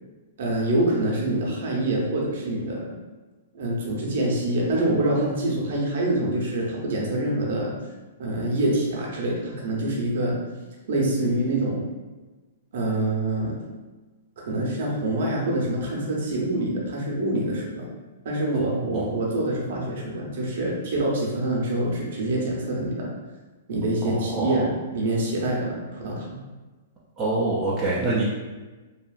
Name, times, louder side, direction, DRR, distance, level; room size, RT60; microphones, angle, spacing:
voice 1, 0.4-2.9 3.5-7.7 8.2-10.3 10.9-11.8 12.7-13.6 14.5-17.9 18.2-23.1 23.7-26.4, right 1 dB, 55° right, -2 dB, 0.7 m, -25 dB
voice 2, 18.6-19.1 24.0-24.6 27.2-28.2, right 2 dB, 10° right, -8 dB, 0.3 m, -26 dB
2.8 x 2.4 x 2.4 m, 1.2 s
hypercardioid pair, 175°, 0 cm